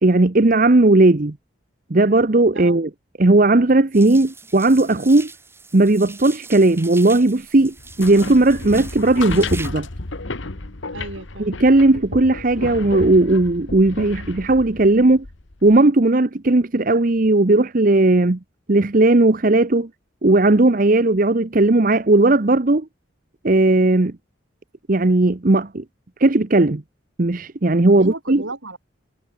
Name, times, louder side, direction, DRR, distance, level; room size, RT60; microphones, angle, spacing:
voice 1, 0.0-1.3 1.9-2.9 3.2-5.3 5.7-9.9 11.4-15.2 15.6-18.4 18.7-19.9 20.2-22.9 23.4-24.1 24.9-25.8 26.2-26.8 27.2-28.4, right 2 dB, 45° right, 0.8 m, -16 dB
sound 1, 3.9-9.7, right 4 dB, 10° right, 6.3 m, -40 dB
sound 2, 7.8-15.8, left 3 dB, 70° left, 1.6 m, -32 dB
voice 2, 10.9-11.5 28.0-28.9, right 2 dB, 75° right, 3.8 m, -33 dB
head